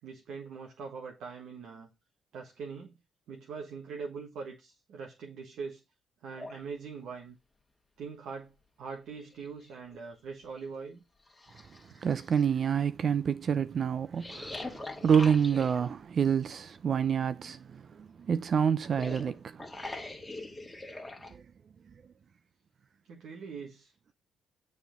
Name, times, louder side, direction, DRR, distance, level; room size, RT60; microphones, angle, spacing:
voice 1, 0.0-1.9 2.3-2.9 3.3-5.8 6.2-7.4 8.0-11.0 23.1-24.1, right 5 dB, 75° right, 1.4 m, -42 dB
sound 1, 6.4-6.6 8.4-8.5 8.9-10.0 10.5-10.6 11.3-12.4 14.2-15.9 18.8-21.3, left 2 dB, 15° left, 1.8 m, -42 dB
voice 2, 12.0-19.6 21.3-21.4, right 7 dB, 50° right, 0.4 m, -28 dB
7.2 x 4.2 x 5.1 m
cardioid pair, 90°, 0 cm